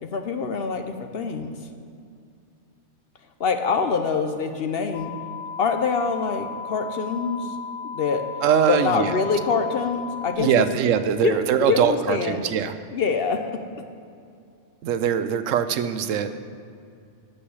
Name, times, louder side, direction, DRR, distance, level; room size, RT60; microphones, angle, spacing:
voice 1, 0.0-1.5 3.4-5.1 5.6-7.5 7.8-8.2 8.7-10.5 11.2-11.4 11.7-12.4 12.9-13.4, left 5 dB, 55° left, 7 dB, 0.8 m, -25 dB
sound 1, 4.9-10.4, left 5 dB, 80° left, 1.8 m, -35 dB
voice 2, 8.4-9.2 10.4-12.7 14.8-16.3, right 8 dB, 80° right, 11 dB, 1.0 m, -22 dB
8.6 x 6.7 x 8.2 m, 2.4 s
omnidirectional pair, 1.3 m